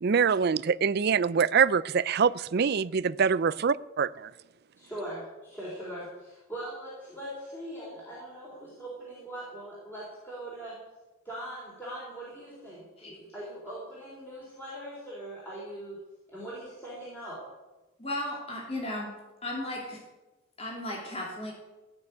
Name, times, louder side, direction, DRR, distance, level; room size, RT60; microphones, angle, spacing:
voice 1, 0.0-4.3, right 6 dB, 50° right, 18 dB, 0.4 m, -25 dB
voice 2, 4.8-10.8 11.2-16.0 16.3-17.4, right 1 dB, 10° left, -7 dB, 4.1 m, -41 dB
voice 3, 18.0-19.1 19.4-20.0 20.6-21.5, left 1 dB, 30° left, -2 dB, 2.9 m, -35 dB
15.5 x 6.7 x 9.6 m, 1.1 s
head